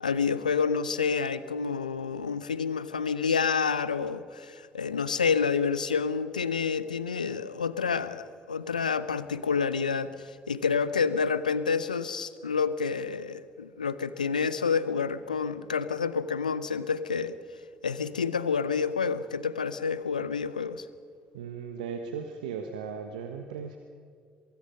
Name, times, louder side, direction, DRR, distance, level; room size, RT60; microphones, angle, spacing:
voice 1, 0.0-17.3 17.8-20.9, left 5 dB, 85° left, 15 dB, 0.7 m, -28 dB
voice 2, 21.3-23.8, right 6 dB, 75° right, 6 dB, 1.2 m, -37 dB
23.5 x 23.0 x 5.5 m, 2.3 s
figure-of-eight pair, 50°, 4 cm